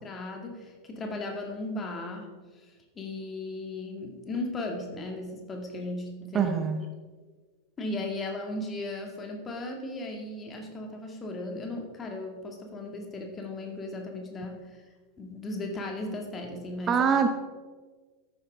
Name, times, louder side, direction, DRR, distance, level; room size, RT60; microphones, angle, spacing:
voice 1, 0.0-2.3 2.5-2.7 3.0-6.5 7.8-14.6 15.2-17.1, left 2 dB, 20° left, 2 dB, 2.2 m, -36 dB
voice 2, 6.3-6.8 16.9-17.3, right 6 dB, 25° right, 7 dB, 0.8 m, -23 dB
13.0 x 9.6 x 3.7 m, 1.4 s
figure-of-eight pair, 90°, 0 cm